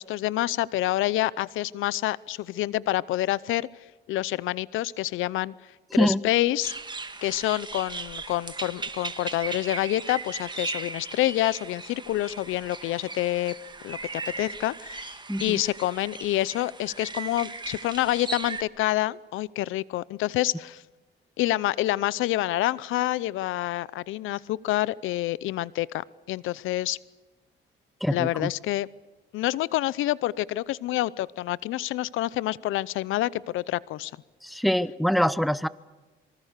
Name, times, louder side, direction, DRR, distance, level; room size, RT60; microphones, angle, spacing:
voice 1, 0.0-3.7 4.1-5.5 6.0-6.7 7.2-13.5 13.8-20.8 21.4-27.0 28.1-28.9 29.3-34.1, left 15 dB, 85° left, 21 dB, 0.7 m, -27 dB
sound 1, 6.6-18.6, right 3 dB, 20° right, 1.9 m, -38 dB
voice 2, 15.3-15.6 28.0-28.5 34.4-35.7, equal, ahead, 17 dB, 0.9 m, -24 dB
26.0 x 24.5 x 6.7 m, 1.2 s
cardioid pair, 90°, 20 cm